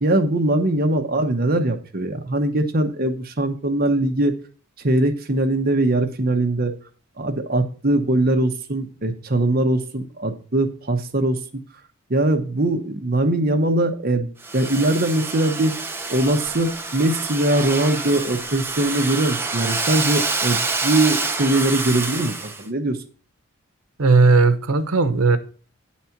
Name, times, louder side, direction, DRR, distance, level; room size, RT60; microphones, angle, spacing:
voice 1, 0.0-4.3 4.8-6.7 7.2-11.4 12.1-15.7 16.1-23.0, right 1 dB, 45° right, 1.0 m, -21 dB
Domestic sounds home sounds, 14.4-22.6, right 3 dB, 10° right, 0.7 m, -27 dB
voice 2, 24.0-25.4, right 3 dB, 80° right, 0.9 m, -16 dB
9.4 x 4.2 x 5.8 m
head